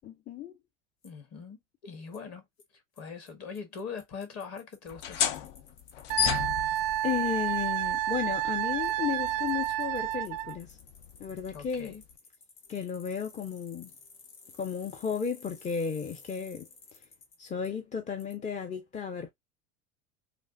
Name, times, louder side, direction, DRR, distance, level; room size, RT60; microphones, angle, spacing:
voice 1, 0.0-0.5 7.0-10.8 11.2-12.0 12.7-13.9 14.6-17.0 17.4-19.3, left 7 dB, 20° left, 0.5 m, -34 dB
Bicycle, 1.0-1.1 2.1-2.2 2.6-2.7 3.0-3.1 3.3-3.4 3.5-6.4 6.7-6.8 8.8-8.9 9.3-17.7 18.2-18.3, left 4 dB, 80° left, 1.1 m, -54 dB
voice 2, 1.0-2.5 2.7-5.3 11.5-12.0, left 6 dB, 40° left, 1.6 m, -42 dB
sound 1, 4.9-12.1, left 9 dB, 65° left, 0.6 m, -36 dB
Wind instrument woodwind instrument, 6.1-10.6, right 13 dB, 40° right, 0.4 m, -30 dB
3.2 x 2.5 x 2.4 m
hypercardioid pair, 90°, 38 cm